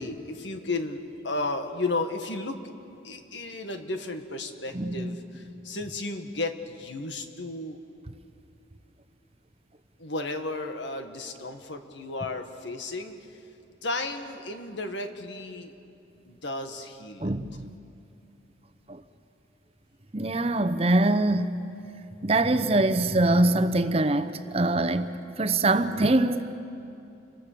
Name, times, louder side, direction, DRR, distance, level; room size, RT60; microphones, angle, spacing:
voice 1, 0.0-2.6 3.0-7.8 10.0-13.4 13.8-15.7 16.2-17.3, left 2 dB, 80° left, 6 dB, 1.9 m, -33 dB
voice 2, 4.7-5.1 17.2-17.7 18.9-19.0 20.1-21.5 22.2-25.1 25.4-26.4, right 2 dB, 35° right, 10 dB, 0.9 m, -23 dB
29.0 x 24.0 x 6.9 m, 2.7 s
head